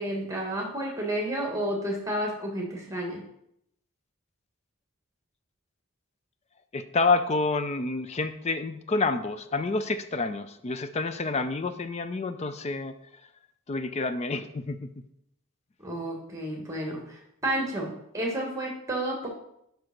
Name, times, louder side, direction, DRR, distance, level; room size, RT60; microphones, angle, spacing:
voice 1, 0.0-3.2 15.8-19.3, right 1 dB, 15° right, 0 dB, 1.4 m, -31 dB
voice 2, 6.7-12.9 13.7-14.9, left 3 dB, 30° left, 10 dB, 0.4 m, -28 dB
5.2 x 5.0 x 5.8 m, 0.76 s
head